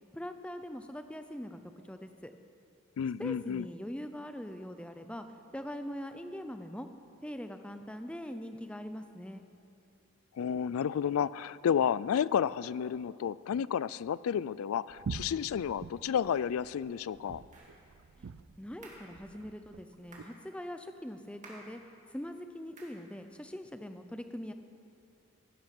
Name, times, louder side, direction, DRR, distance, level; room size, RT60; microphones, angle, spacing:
voice 1, 0.1-1.6 1.9-2.3 3.2-5.3 5.5-6.9 7.2-9.4 18.2-18.3 18.6-21.8 22.1-24.5, equal, 5° left, 8 dB, 0.5 m, -42 dB
voice 2, 3.0-3.7 10.4-17.4, left 8 dB, 80° left, 20 dB, 0.3 m, -31 dB
sound 1, 14.9-20.2, right 5 dB, 70° right, 0.4 m, -46 dB
sound 2, 17.5-17.8 18.8-19.1 20.1-20.4 21.4-21.7 22.8-23.0, right 2 dB, 35° right, 2.4 m, -52 dB
16.5 x 10.0 x 6.1 m, 2.8 s
head